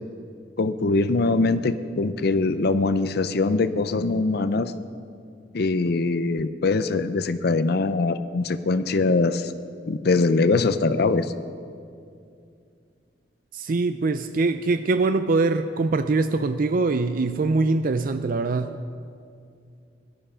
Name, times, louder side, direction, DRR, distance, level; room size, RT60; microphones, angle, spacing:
voice 1, 0.6-4.7 5.5-9.5 9.9-11.3, left 3 dB, 60° left, 12 dB, 0.5 m, -22 dB
voice 2, 13.5-18.8, right 3 dB, 50° right, 10 dB, 0.4 m, -23 dB
18.0 x 11.0 x 5.6 m, 2.4 s
head